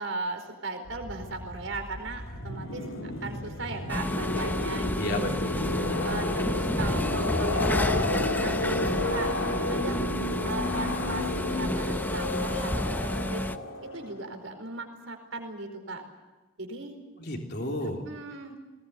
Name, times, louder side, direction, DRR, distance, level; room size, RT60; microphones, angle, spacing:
voice 1, 0.0-2.8 3.2-5.3 6.0-9.3 9.7-10.1 10.4-13.4 13.9-16.0 16.6-16.9 18.1-18.6, right 2 dB, 75° right, 4 dB, 4.7 m, -37 dB
sound 1, 0.9-14.3, left 2 dB, 85° left, 2.7 m, -32 dB
sound 2, 3.9-13.6, left 1 dB, 10° left, 0.7 m, -31 dB
voice 2, 5.0-6.7 17.2-18.0, left 1 dB, 55° left, 1 dB, 3.5 m, -34 dB
20.5 x 20.0 x 9.5 m, 1.2 s
head